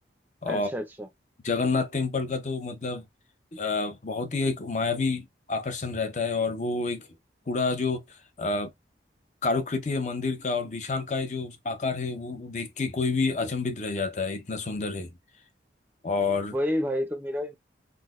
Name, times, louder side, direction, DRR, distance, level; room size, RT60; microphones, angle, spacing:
voice 1, 0.4-1.1 16.5-17.6, equal, 10° right, 0.5 m, -29 dB
voice 2, 1.4-3.0 3.5-7.1 7.5-8.7 9.4-15.1 16.0-16.6, left 4 dB, 40° left, 0.6 m, -29 dB
3.8 x 2.1 x 2.4 m
head